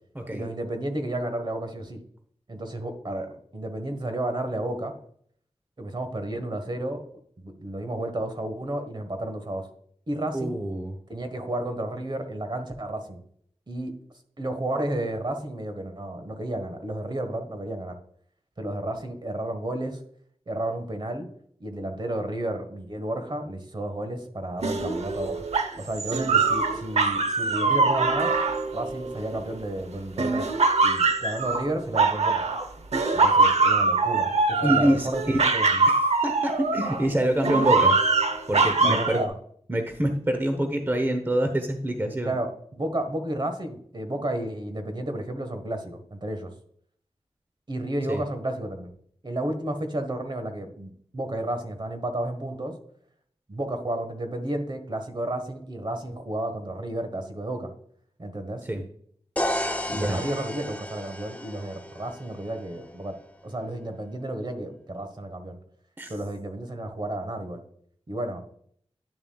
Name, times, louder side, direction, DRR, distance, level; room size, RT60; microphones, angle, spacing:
voice 1, 0.3-2.0 2.5-4.9 5.8-7.0 7.4-9.6 10.1-10.5 11.1-13.2 13.7-13.9 14.4-17.9 18.6-20.0 20.5-21.3 21.6-25.4 25.8-28.3 28.7-30.5 30.8-32.4 33.1-35.8 38.8-39.3 42.2-46.5 47.7-48.9 49.2-52.7 53.5-57.7 58.2-58.6 59.9-63.1 63.4-65.6 66.1-67.6 68.1-68.4, right 1 dB, 45° right, 7 dB, 1.4 m, -32 dB
voice 2, 10.3-11.0 34.6-35.4 35.9-38.0 38.5-39.2 39.7-42.3 48.1-48.2 58.7-58.8 59.9-60.2 66.0-66.1, right 1 dB, 20° right, 5 dB, 0.9 m, -26 dB
sound 1, 24.6-29.6 30.2-32.7 32.9-37.1 37.4-39.3, right 3 dB, 80° right, 0.8 m, -23 dB
sound 2, 59.4-63.2, left 1 dB, 15° left, 0.8 m, -33 dB
10.5 x 6.9 x 2.3 m, 0.62 s
wide cardioid pair, 75°, 11 cm